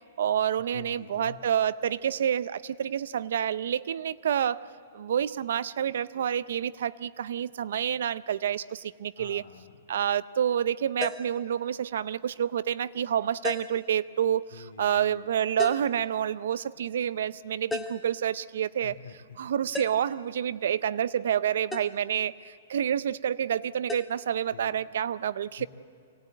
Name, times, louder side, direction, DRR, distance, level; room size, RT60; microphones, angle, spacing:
voice 1, 0.2-9.4 9.9-14.5 14.8-18.9 19.4-25.7, right 9 dB, 60° right, 17 dB, 0.6 m, -28 dB
voice 2, 0.7-1.4 9.2-9.8 14.5-15.2 18.8-19.4 24.5-24.8 25.6-25.7, left 6 dB, 85° left, 4 dB, 2.4 m, -46 dB
sound 1, 11.0-11.4 13.4-13.9 15.6-16.0 17.7-18.1 19.7-20.2 21.7-22.0 23.9-24.1, left 3 dB, 5° left, 0.8 m, -35 dB
24.0 x 18.0 x 9.3 m, 2.4 s
hypercardioid pair, 175°, 0 cm